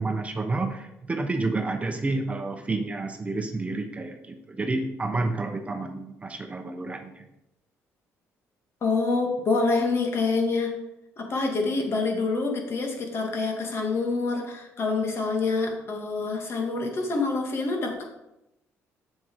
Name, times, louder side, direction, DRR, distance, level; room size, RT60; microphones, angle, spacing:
voice 1, 0.0-7.2, right 3 dB, 25° right, 5 dB, 1.0 m, -30 dB
voice 2, 8.8-10.7 11.2-18.0, left 3 dB, 50° left, 2 dB, 2.2 m, -26 dB
7.7 x 7.1 x 4.7 m, 0.89 s
cardioid pair, 100°, 6 cm